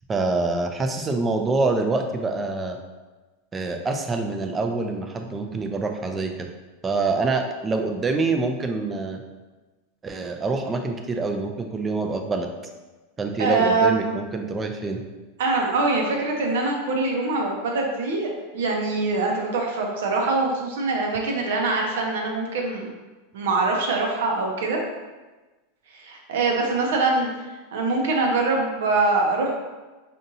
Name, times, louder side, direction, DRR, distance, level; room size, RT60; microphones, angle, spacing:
voice 1, 0.1-2.8 3.5-6.5 6.8-9.2 10.0-12.5 13.2-15.0, right 3 dB, 15° right, 5 dB, 0.4 m, -26 dB
voice 2, 13.4-14.1 15.4-22.9 23.3-24.8 25.9-27.3 27.7-29.5, right 3 dB, 80° right, 1 dB, 0.8 m, -23 dB
5.3 x 2.6 x 2.7 m, 1.2 s
supercardioid pair, 145°, 0 cm